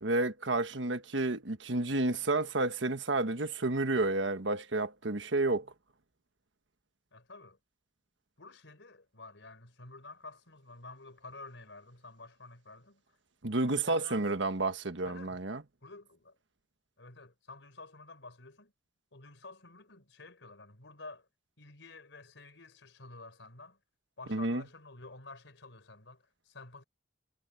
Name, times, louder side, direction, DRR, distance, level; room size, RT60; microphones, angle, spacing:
voice 1, 0.0-5.7 13.4-15.6 24.3-24.6, right 2 dB, 75° right, 1.4 m, -30 dB
voice 2, 7.1-7.6 8.4-13.0 13.6-14.3 15.0-15.4 15.8-16.4 17.0-18.7 19.1-21.3 21.6-23.8 24.2-26.8, left 3 dB, 75° left, 4.3 m, -51 dB
head